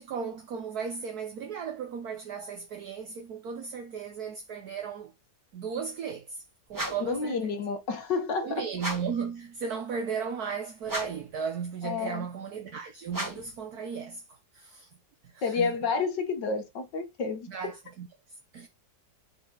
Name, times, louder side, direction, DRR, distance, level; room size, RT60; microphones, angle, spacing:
voice 1, 0.0-5.1 5.5-6.4 6.7-7.4 8.4-14.9 15.2-15.7 17.5-18.7, right 6 dB, 65° right, 1.3 m, -36 dB
sound 1, 6.7-7.2 8.7-9.2 10.8-11.3 13.1-13.6, right 1 dB, 10° right, 1.6 m, -35 dB
voice 2, 7.0-8.6 11.8-12.3 15.4-17.5, left 5 dB, 75° left, 2.0 m, -30 dB
8.6 x 4.3 x 3.8 m
omnidirectional pair, 1.9 m